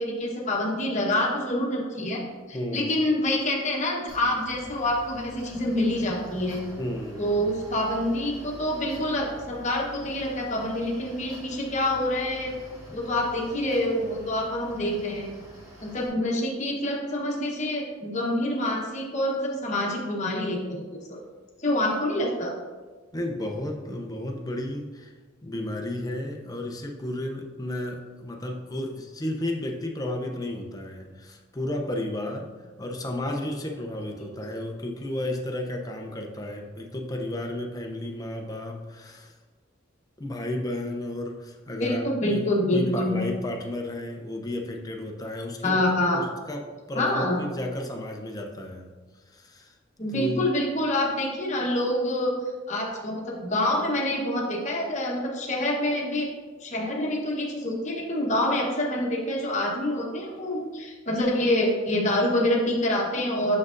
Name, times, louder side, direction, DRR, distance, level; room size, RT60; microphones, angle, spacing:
voice 1, 0.0-2.2 2.5-6.6 7.2-12.5 12.9-15.3 15.8-21.2 21.6-22.5 41.8-43.2 45.6-46.2 46.9-47.4 50.0-52.3 52.7-56.3 56.6-63.6, left 1 dB, 35° left, -2 dB, 1.0 m, -26 dB
voice 2, 2.5-3.0 6.8-7.3 12.9-13.0 23.1-32.5 32.8-39.3 40.2-49.7 50.1-50.5, left 1 dB, 20° left, 2 dB, 0.6 m, -33 dB
Mechanical fan, 4.1-16.1, equal, 15° right, 1.2 m, -46 dB
6.4 x 5.9 x 2.5 m, 1.4 s
head